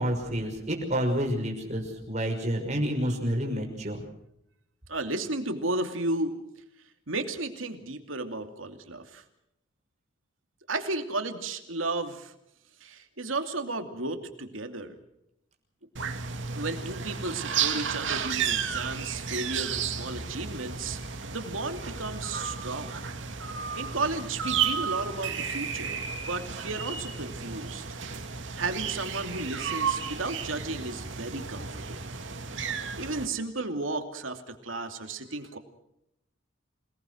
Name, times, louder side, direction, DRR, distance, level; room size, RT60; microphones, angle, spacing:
voice 1, 0.0-4.0, equal, 35° right, 1 dB, 5.8 m, -29 dB
voice 2, 4.9-6.3 7.1-9.2 10.7-12.3 12.8-14.9 16.5-23.0 23.7-27.8 28.5-32.1 33.0-35.6, right 2 dB, 85° right, 6 dB, 2.6 m, -34 dB
sound 1, 16.0-33.3, right 6 dB, 70° right, 2.3 m, -33 dB
27.5 x 19.0 x 6.4 m, 0.81 s
head